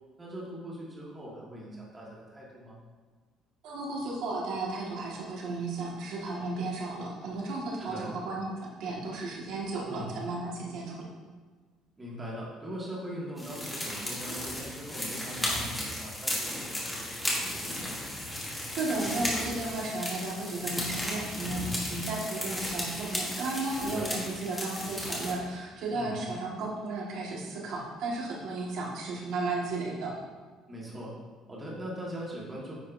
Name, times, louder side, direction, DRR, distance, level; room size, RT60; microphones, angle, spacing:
voice 1, 0.2-2.8 7.8-8.1 9.8-10.1 12.0-17.9 23.8-24.1 25.9-26.2 30.7-31.2 31.5-32.7, equal, 15° right, -5 dB, 1.7 m, -41 dB
voice 2, 3.6-11.1 18.3-18.4 18.7-30.1, right 2 dB, 65° right, -3 dB, 1.6 m, -34 dB
sound 1, 13.4-25.3, left 1 dB, 10° left, 1.3 m, -35 dB
9.4 x 5.2 x 2.6 m, 1.5 s
cardioid pair, 155°, 0 cm